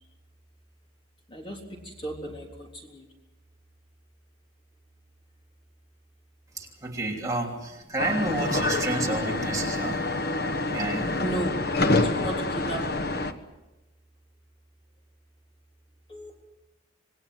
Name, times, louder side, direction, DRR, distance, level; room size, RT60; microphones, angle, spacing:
voice 1, 1.3-3.0 11.2-11.5 12.0-13.0 16.1-16.4, right 1 dB, 25° left, 0 dB, 3.6 m, -35 dB
voice 2, 6.6-10.0 10.7-11.1, right 2 dB, 15° right, -2 dB, 3.1 m, -30 dB
sound 1, 8.0-13.3, left 2 dB, 50° left, 1.3 m, -27 dB
27.5 x 20.0 x 7.7 m, 1.1 s
head